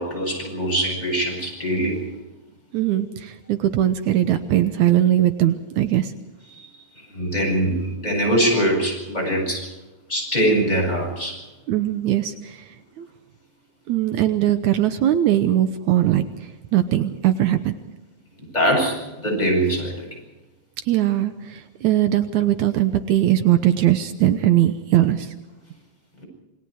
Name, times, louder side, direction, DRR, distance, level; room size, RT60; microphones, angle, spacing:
voice 1, 0.0-2.1 6.5-6.7 7.1-9.7 10.1-11.4 18.5-20.1, right 1 dB, 10° left, -1 dB, 8.0 m, -22 dB
voice 2, 2.7-6.1 11.7-13.1 13.9-17.7 20.9-25.3, right 12 dB, 75° right, 9 dB, 2.3 m, -20 dB
28.0 x 22.0 x 4.8 m, 1.1 s
omnidirectional pair, 3.5 m